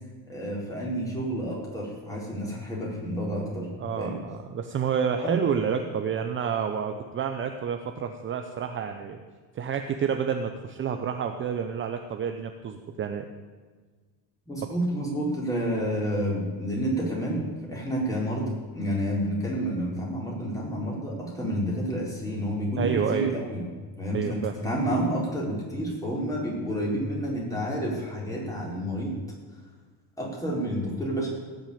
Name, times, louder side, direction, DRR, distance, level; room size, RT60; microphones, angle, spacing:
voice 1, 0.3-3.7 4.0-4.1 5.2-5.4 14.5-23.6 24.0-29.2 30.2-31.3, equal, 10° left, -3 dB, 4.2 m, -29 dB
voice 2, 3.8-9.2 9.5-13.3 22.8-23.4 24.1-24.5, right 7 dB, 30° right, 6 dB, 0.8 m, -29 dB
18.0 x 6.4 x 8.6 m, 1.4 s
cardioid pair, 145°, 41 cm